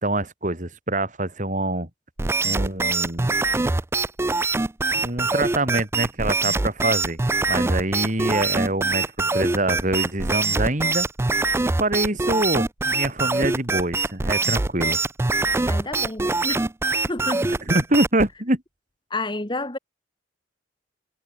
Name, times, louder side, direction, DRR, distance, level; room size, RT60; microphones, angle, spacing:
voice 1, 0.0-1.9 2.4-3.3 5.0-7.2 7.5-9.1 9.3-11.1 11.8-15.0 17.7-18.6, right 1 dB, 40° right, 3.0 m, -25 dB
sound 1, 2.2-18.3, right 3 dB, 15° right, 0.3 m, -23 dB
voice 2, 15.7-16.7 17.0-17.5 19.1-19.8, left 2 dB, 25° left, 1.7 m, -30 dB
head